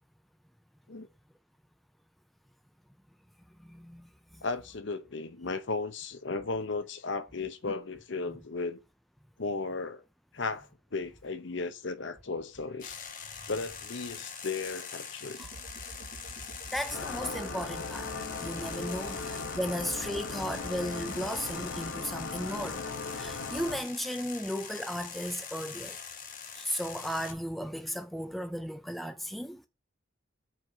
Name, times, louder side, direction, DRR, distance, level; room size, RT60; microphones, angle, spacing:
voice 1, 3.6-4.4 8.3-8.4 15.4-15.5 16.7-18.1 18.4-22.8 23.1-26.0 26.5-29.6, equal, ahead, 0.5 m, -35 dB
voice 2, 4.4-8.8 9.4-10.0 10.3-13.0 13.5-15.4 15.8-15.9 19.0-19.2, left 3 dB, 65° left, 0.8 m, -35 dB
sound 1, 12.8-27.3, left 6 dB, 40° left, 1.0 m, -43 dB
sound 2, 15.4-23.6, right 3 dB, 50° right, 0.6 m, -49 dB
sound 3, 16.9-23.8, left 4 dB, 85° left, 1.0 m, -38 dB
4.7 x 4.6 x 5.9 m
head